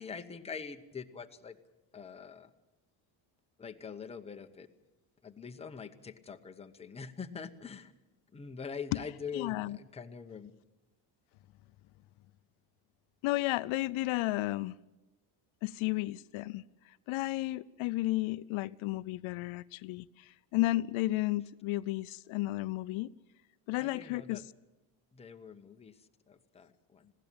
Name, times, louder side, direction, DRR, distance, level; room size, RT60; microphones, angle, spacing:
voice 1, 0.0-1.6 1.9-2.5 3.6-4.7 5.2-7.9 8.3-10.5 23.8-24.4 25.1-27.1, left 6 dB, 15° left, 0.9 m, -44 dB
voice 2, 9.3-9.8 13.2-14.7 15.6-23.1 23.7-24.4, left 18 dB, 75° left, 0.6 m, -33 dB
20.5 x 16.0 x 9.0 m
cardioid pair, 150°, 48 cm